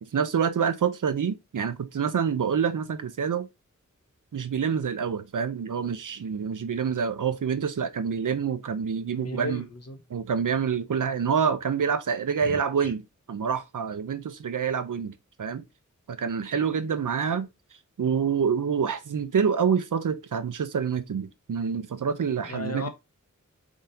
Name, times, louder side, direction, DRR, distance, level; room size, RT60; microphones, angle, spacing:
voice 1, 0.0-3.5 4.3-9.6 10.1-15.6 16.1-17.5 18.0-22.9, right 6 dB, 90° right, 0.7 m, -27 dB
voice 2, 9.1-10.0 12.4-12.9 22.4-22.9, left 2 dB, 55° left, 1.3 m, -36 dB
4.9 x 3.7 x 2.7 m
wide cardioid pair, 80°, 30 cm